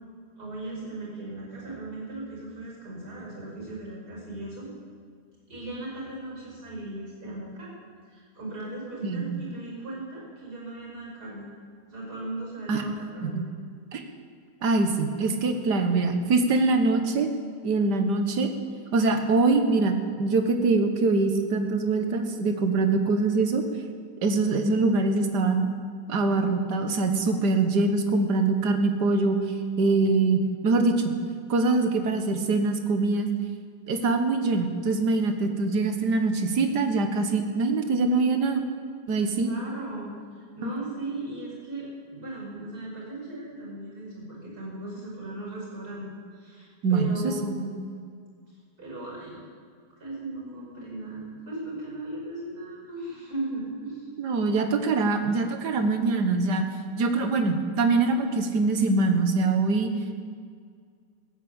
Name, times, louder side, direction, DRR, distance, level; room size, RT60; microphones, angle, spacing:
voice 1, 0.4-4.7 5.5-7.7 8.1-11.5 11.9-13.4 15.8-15.9 39.4-46.1 46.3-47.8 48.8-49.4 50.0-54.1, right 2 dB, 70° right, -3 dB, 5.8 m, -37 dB
voice 2, 9.0-9.4 12.7-12.8 13.2-13.4 13.9-14.0 14.6-17.3 17.6-18.5 18.9-23.6 24.2-25.7 26.1-29.4 29.8-31.1 31.5-33.3 33.9-38.6 39.1-39.5 40.6-40.7 46.8-47.3 54.2-56.6 57.0-59.9, right 3 dB, 85° right, 6 dB, 1.9 m, -23 dB
15.5 x 8.9 x 8.1 m, 2.1 s
omnidirectional pair, 1.7 m